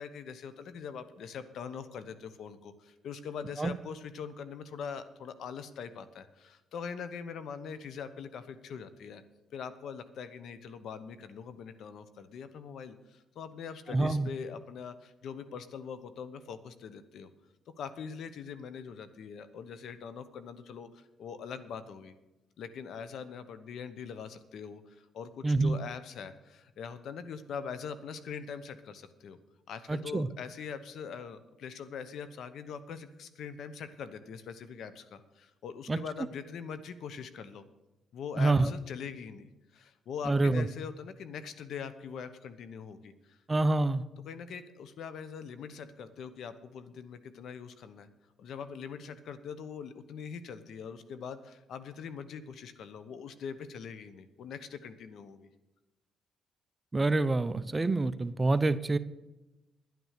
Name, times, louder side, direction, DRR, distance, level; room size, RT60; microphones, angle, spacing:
voice 1, 0.0-9.2 9.5-17.3 17.8-22.1 22.6-29.4 29.7-37.7 38.1-43.4 44.2-48.1 48.4-55.5, left 6 dB, 70° left, 12 dB, 1.0 m, -42 dB
voice 2, 13.9-14.3 25.4-25.8 29.9-30.3 35.9-36.0 38.4-38.7 40.3-40.7 43.5-44.0 56.9-59.0, right 2 dB, 20° right, 13 dB, 0.6 m, -26 dB
11.0 x 9.4 x 6.6 m, 1.0 s
cardioid pair, 90°, 0 cm